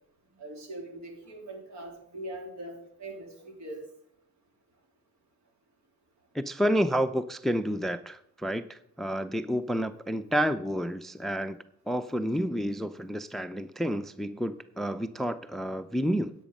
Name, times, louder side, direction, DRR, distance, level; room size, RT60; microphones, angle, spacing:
voice 1, 0.4-3.8, right 1 dB, 65° right, 3 dB, 3.2 m, -41 dB
voice 2, 6.3-11.6 11.9-16.3, equal, ahead, 13 dB, 0.5 m, -30 dB
10.0 x 8.5 x 5.3 m, 0.68 s
cardioid pair, 90°, 30 cm